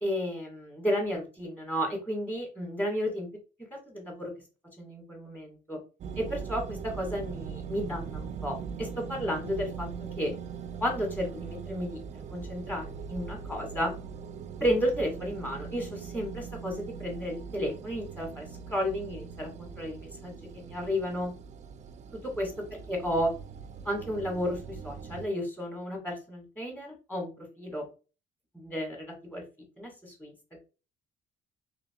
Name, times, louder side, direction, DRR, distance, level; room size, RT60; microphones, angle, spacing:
voice 1, 0.0-3.3 3.7-4.3 4.8-5.8 6.2-9.9 10.2-10.3 10.8-12.0 12.3-13.9 14.6-21.3 22.4-22.5 22.9-23.3 23.9-27.3 27.6-27.9 28.5-29.4 29.8-30.6, equal, 10° left, 0 dB, 1.9 m, -32 dB
sound 1, 6.0-25.3, right 6 dB, 45° right, 0.4 m, -41 dB
3.8 x 3.5 x 2.4 m, 0.33 s
cardioid pair, 110°, 17 cm